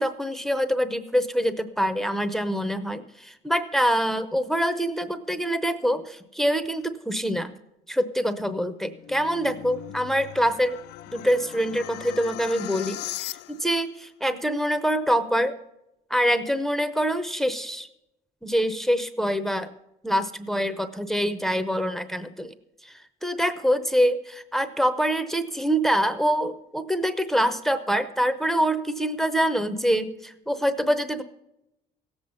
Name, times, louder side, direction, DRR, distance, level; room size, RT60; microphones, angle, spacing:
voice 1, 0.0-7.6 7.9-10.8 11.1-15.6 16.1-17.9 18.4-19.7 20.0-22.5 22.8-31.2, equal, ahead, 11 dB, 0.7 m, -25 dB
sound 1, 8.7-13.8, left 15 dB, 75° left, 0.4 m, -39 dB
16.5 x 7.9 x 5.4 m, 0.86 s
cardioid pair, 110°, 17 cm